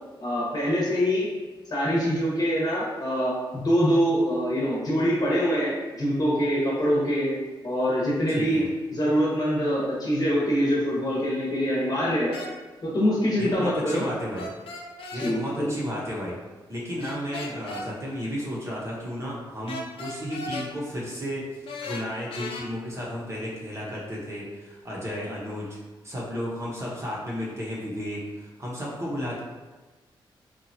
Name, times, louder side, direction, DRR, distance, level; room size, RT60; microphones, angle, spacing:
voice 1, 0.2-1.3 1.7-7.3 7.6-8.6 8.9-12.4 12.8-14.0 15.1-15.7, equal, 40° left, -6 dB, 0.9 m, -24 dB
voice 2, 8.3-8.7 13.4-14.5 15.1-16.3 16.7-25.7 26.0-29.4, equal, 30° right, -6 dB, 0.8 m, -33 dB
sound 1, 12.3-12.5 14.3-15.4 17.0-17.9 19.7-20.7 21.7-22.6, left 2 dB, 75° left, 0.4 m, -36 dB
2.8 x 2.3 x 2.7 m, 1.2 s
cardioid pair, 75°, 9 cm